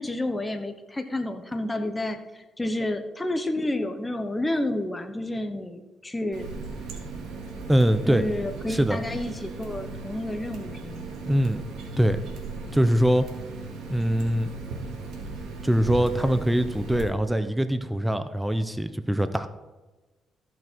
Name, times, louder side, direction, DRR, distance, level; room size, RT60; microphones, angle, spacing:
voice 1, 0.0-6.5 8.1-11.1, left 1 dB, 15° left, 7 dB, 1.0 m, -30 dB
Water tap faucet, 6.3-17.0, right 3 dB, 80° right, 2.1 m, -37 dB
voice 2, 7.7-8.3 8.7-9.0 11.3-11.6 12.0-12.2 12.7-13.3 13.9-14.5 15.6-19.5, equal, 5° right, 10 dB, 0.7 m, -23 dB
14.0 x 6.2 x 4.5 m, 1.2 s
cardioid pair, 90°, 0 cm